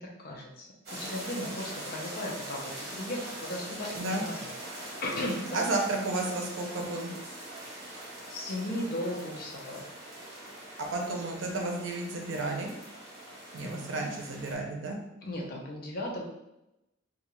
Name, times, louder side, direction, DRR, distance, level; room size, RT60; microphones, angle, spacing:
voice 1, 0.0-4.5 5.0-5.6 8.3-9.8 13.6-14.1 15.2-16.2, left 1 dB, 50° left, -1 dB, 0.5 m, -36 dB
sound 1, 0.9-14.6, right 1 dB, 55° right, 0.9 m, -43 dB
voice 2, 3.7-4.2 5.5-7.1 10.8-12.7 13.5-15.0, right 2 dB, 70° right, 1 dB, 0.5 m, -32 dB
2.4 x 2.3 x 2.9 m, 0.90 s
head